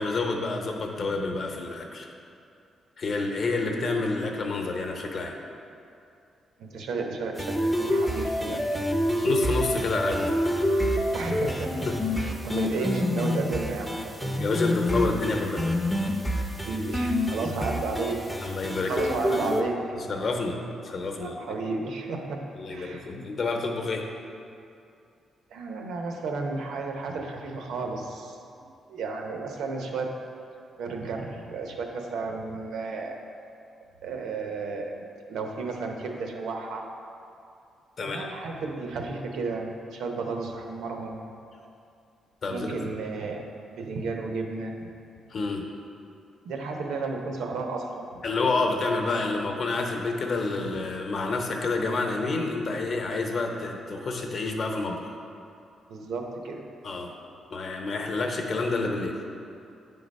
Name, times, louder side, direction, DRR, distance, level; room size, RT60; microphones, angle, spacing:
voice 1, 0.0-2.1 3.0-5.4 9.2-10.3 11.9-12.0 14.4-15.6 18.4-19.0 20.1-21.4 22.6-24.1 38.0-38.3 42.4-42.9 45.3-45.7 48.2-55.1 56.8-57.1 57.5-59.2, left 3 dB, 45° left, 2 dB, 0.8 m, -28 dB
voice 2, 6.6-8.8 11.1-11.9 12.2-14.3 16.6-18.3 18.8-19.8 21.2-23.1 25.5-28.4 28.9-30.2 30.8-33.2 34.0-36.9 38.0-41.2 42.5-44.9 46.4-48.1 55.9-56.7, right 3 dB, 85° right, 2 dB, 0.8 m, -33 dB
sound 1, 7.4-19.6, left 1 dB, ahead, 0.5 m, -27 dB
9.4 x 3.8 x 5.3 m, 2.6 s
cardioid pair, 160°, 0 cm